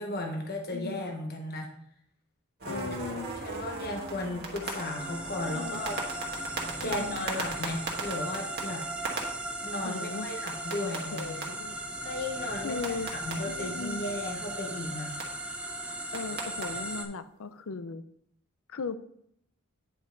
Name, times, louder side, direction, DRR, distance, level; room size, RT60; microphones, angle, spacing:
voice 1, 0.0-1.7 2.7-3.0 3.4-6.0 6.8-8.8 9.6-11.5 12.0-15.2, left 1 dB, 45° left, 2 dB, 1.1 m, -35 dB
voice 2, 0.7-1.1 2.7-3.3 5.5-5.8 6.8-7.3 9.9-10.3 11.1-11.8 12.6-13.1 13.4-14.0 16.1-18.0 18.7-19.0, left 4 dB, 65° left, 12 dB, 0.5 m, -37 dB
sound 1, 2.6-9.2 10.5-11.4 12.8-13.3 15.2-15.3 16.1-16.6, right 3 dB, 50° right, 1.5 m, -37 dB
sound 2, 4.6-17.0, right 1 dB, 5° right, 0.7 m, -37 dB
9.1 x 5.2 x 3.9 m, 0.70 s
head